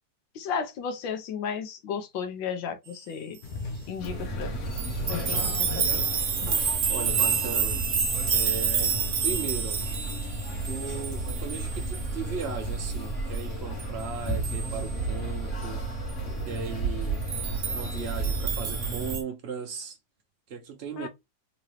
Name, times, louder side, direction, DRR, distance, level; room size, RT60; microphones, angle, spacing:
voice 1, 0.3-3.4 3.9-4.6 5.1-6.1 21.0-21.1, left 6 dB, 85° left, 1.6 m, -34 dB
sound 1, 3.4-12.1, left 3 dB, 60° left, 1.3 m, -42 dB
sound 2, 4.0-19.2, right 2 dB, 45° left, 1.6 m, -33 dB
sound 3, 4.8-12.1 12.4-12.5 12.9-13.0 13.3-13.4 13.8-13.9 14.3-14.8 17.2-19.2, right 6 dB, 55° right, 0.9 m, -29 dB
voice 2, 5.3-5.9 6.9-7.8 8.3-9.8 10.6-15.8 16.5-17.2 17.7-20.0 20.5-21.1, right 6 dB, 80° right, 0.5 m, -37 dB
3.7 x 3.0 x 3.1 m
omnidirectional pair, 2.0 m